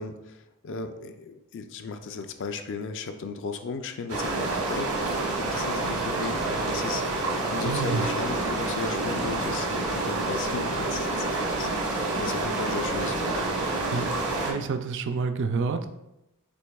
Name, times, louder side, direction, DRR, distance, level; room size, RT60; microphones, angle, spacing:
voice 1, 0.0-4.9 5.4-7.0 7.5-11.7 12.2-13.4, left 4 dB, 55° left, 7 dB, 0.4 m, -35 dB
sound 1, 4.1-14.5, right 2 dB, 80° right, 1.2 m, -28 dB
voice 2, 7.6-8.1 13.9-14.1 14.4-15.9, right 4 dB, 55° right, 8 dB, 0.4 m, -28 dB
6.1 x 3.2 x 2.3 m, 0.89 s
head